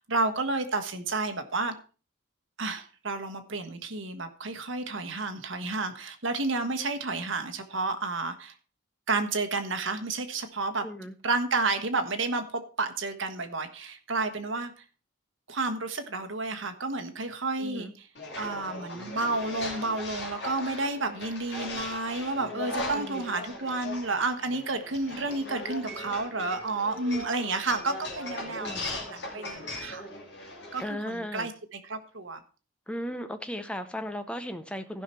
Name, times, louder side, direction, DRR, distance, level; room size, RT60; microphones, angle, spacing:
voice 1, 0.0-1.7 2.6-8.5 9.1-10.8 11.2-14.8 15.5-18.1 18.4-30.1 30.7-32.4, right 3 dB, 75° right, 8 dB, 1.3 m, -31 dB
voice 2, 10.8-11.1 17.6-17.9 22.9-23.2 28.6-28.9 30.8-31.5 32.9-35.0, equal, 5° left, 9 dB, 0.7 m, -36 dB
sound 1, 18.1-30.8, left 2 dB, 55° left, 2.6 m, -38 dB
15.0 x 5.7 x 4.4 m, 0.36 s
head